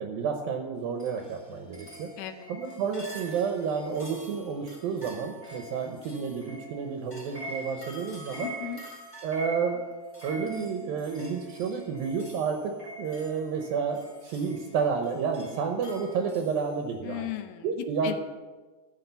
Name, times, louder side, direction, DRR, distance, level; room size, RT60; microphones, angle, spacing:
voice 1, 0.0-2.1 2.5-8.5 9.2-9.8 10.2-17.3 17.6-18.2, right 6 dB, 75° right, 4 dB, 2.3 m, -30 dB
sound 1, 1.0-16.6, right 1 dB, 10° left, 1.9 m, -44 dB
voice 2, 2.2-2.5 8.4-8.8 17.0-18.2, left 12 dB, 80° left, 8 dB, 2.7 m, -36 dB
13.0 x 6.1 x 6.9 m, 1.3 s
omnidirectional pair, 5.0 m